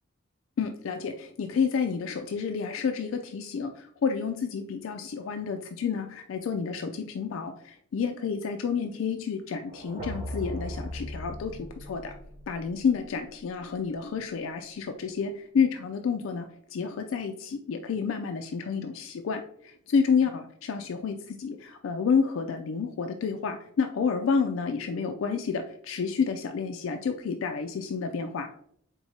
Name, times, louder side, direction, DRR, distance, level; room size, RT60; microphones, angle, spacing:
voice 1, 0.6-12.1 12.5-28.5, left 6 dB, 80° left, 5 dB, 0.4 m, -30 dB
sound 1, 9.6-13.6, equal, 30° right, 0.9 m, -39 dB
4.5 x 3.7 x 2.7 m, 0.65 s
head